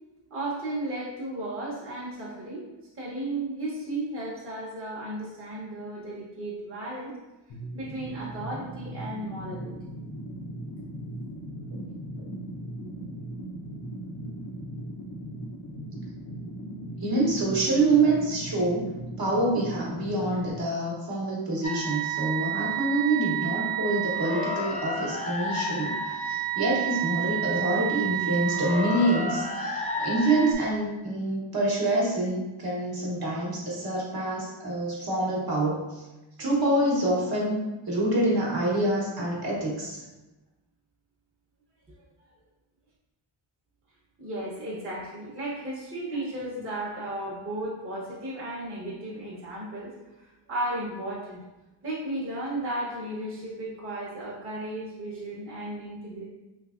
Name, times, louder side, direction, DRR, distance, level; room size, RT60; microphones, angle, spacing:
voice 1, 0.3-2.6 2.9-7.1 7.6-9.7 44.2-49.9 50.2-51.4 51.8-56.2, right 1 dB, 25° right, -7 dB, 0.9 m, -34 dB
sound 1, 7.5-20.5, right 1 dB, 80° left, 0.9 m, -38 dB
voice 2, 17.0-18.9 19.2-36.0 36.4-37.6 37.9-40.0, right 2 dB, 50° right, -4 dB, 1.0 m, -26 dB
sound 2, 21.6-30.5, right 5 dB, 15° left, 0.4 m, -30 dB
3.2 x 3.2 x 2.4 m, 1.1 s
wide cardioid pair, 105°, 47 cm